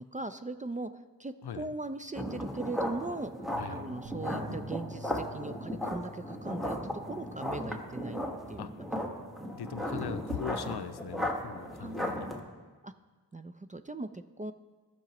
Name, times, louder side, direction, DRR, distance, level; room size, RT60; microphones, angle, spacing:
voice 1, 0.0-6.8 7.1-8.2 8.5-8.9 11.8-12.1 12.8-12.9 13.3-14.5, right 2 dB, 20° right, 10 dB, 0.3 m, -39 dB
sound 1, 2.1-12.4, equal, ahead, 1.3 m, -36 dB
voice 2, 3.5-3.9 8.6-8.7 9.5-12.3, left 8 dB, 70° left, 12 dB, 0.5 m, -40 dB
sound 2, 4.0-10.3, equal, 60° right, 1.1 m, -50 dB
17.0 x 5.9 x 3.0 m, 1.3 s
wide cardioid pair, 50°, 41 cm